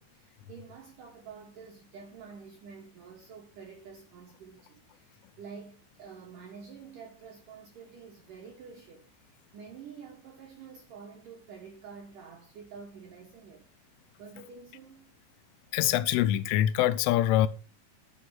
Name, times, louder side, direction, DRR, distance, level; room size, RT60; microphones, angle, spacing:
voice 1, 0.0-13.7 14.2-15.1, right 6 dB, 80° right, 1.9 m, -48 dB
voice 2, 15.7-17.5, left 13 dB, 85° left, 3.1 m, -24 dB
9.3 x 5.7 x 5.6 m
omnidirectional pair, 5.5 m